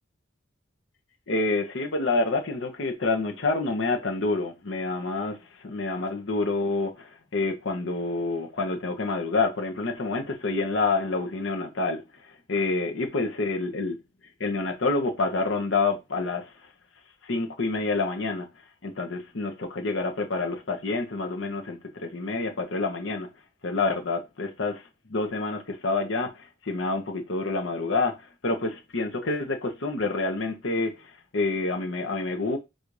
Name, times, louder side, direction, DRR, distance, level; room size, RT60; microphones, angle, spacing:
voice 1, 1.3-5.4 5.6-12.0 12.5-14.0 14.4-16.5 17.2-18.5 18.8-23.3 23.6-32.6, left 3 dB, 65° left, 0.9 m, -28 dB
4.0 x 2.6 x 4.7 m
head